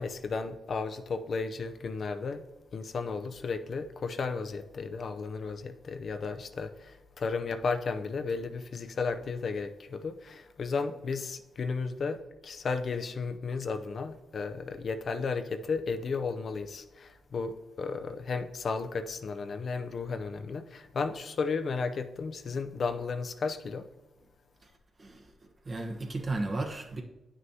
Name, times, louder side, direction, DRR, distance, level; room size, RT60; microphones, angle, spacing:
voice 1, 0.0-2.5 2.7-23.9, left 4 dB, 60° left, 0.6 m, -34 dB
voice 2, 25.0-25.3 25.6-27.0, right 2 dB, 40° right, 1.1 m, -34 dB
9.2 x 6.2 x 2.8 m
cardioid pair, 75°, 0 cm